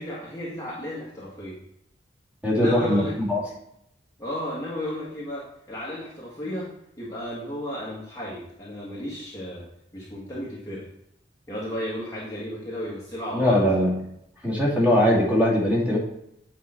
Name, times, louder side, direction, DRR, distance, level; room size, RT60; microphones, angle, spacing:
voice 1, 0.0-1.6 2.5-3.1 4.2-6.7 7.0-9.6 9.9-10.8 11.5-13.6, left 1 dB, 20° left, -6 dB, 1.6 m, -33 dB
voice 2, 2.4-3.4 13.3-13.9 14.4-16.0, left 1 dB, 10° right, -5 dB, 2.6 m, -21 dB
8.5 x 5.1 x 4.3 m, 0.79 s
head